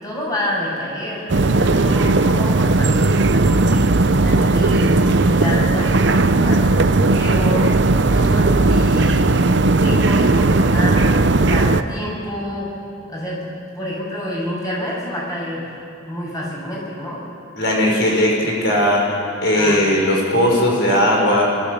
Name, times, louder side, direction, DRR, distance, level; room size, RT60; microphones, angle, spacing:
voice 1, 0.0-9.3 9.7-12.7 13.1-13.4 13.7-15.8 16.1-17.2 19.6-19.8, equal, 20° left, -4 dB, 7.1 m, -27 dB
sound 1, 1.3-11.8, right 2 dB, 60° right, 0.7 m, -16 dB
voice 2, 17.5-21.4, left 1 dB, 60° left, -2 dB, 6.1 m, -18 dB
28.5 x 14.0 x 8.2 m, 2.7 s
head